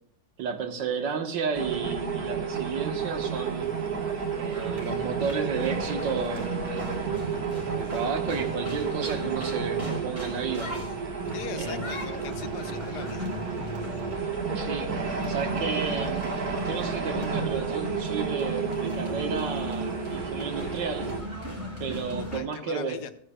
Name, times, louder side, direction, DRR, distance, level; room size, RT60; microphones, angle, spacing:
voice 1, 0.4-3.8 4.3-7.2 7.7-10.7 11.6-11.9 14.6-16.3 16.6-21.1 21.8-23.0, right 5 dB, 75° right, 5 dB, 1.9 m, -32 dB
sound 1, 1.5-21.2, right 5 dB, 55° right, 1.9 m, -31 dB
sound 2, 4.5-22.4, equal, 10° right, 2.8 m, -38 dB
voice 2, 11.3-13.3 22.2-23.1, left 9 dB, 70° left, 9 dB, 1.2 m, -40 dB
15.5 x 9.2 x 2.3 m, 0.64 s
omnidirectional pair, 2.0 m